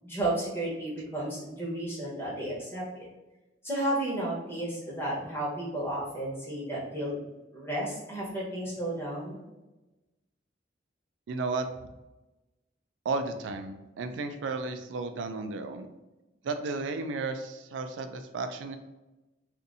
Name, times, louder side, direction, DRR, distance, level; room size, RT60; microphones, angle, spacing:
voice 1, 0.0-3.1 3.6-7.2 7.5-9.4, right 1 dB, 15° left, -6 dB, 1.0 m, -33 dB
voice 2, 11.3-11.9 13.1-15.9 16.4-18.8, right 3 dB, 85° right, 7 dB, 0.3 m, -33 dB
2.7 x 2.5 x 3.9 m, 1.0 s
head